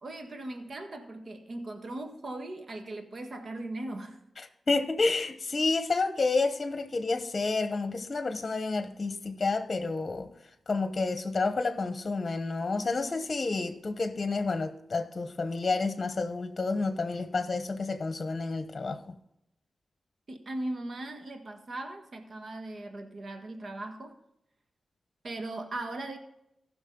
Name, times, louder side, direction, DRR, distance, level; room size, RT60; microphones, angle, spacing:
voice 1, 0.0-4.2 20.3-24.2 25.2-26.2, right 2 dB, 60° right, 1.6 m, -38 dB
voice 2, 4.4-10.3 10.7-19.1, left 3 dB, 45° left, 1.0 m, -30 dB
15.5 x 6.2 x 3.8 m
cardioid pair, 45°, 0 cm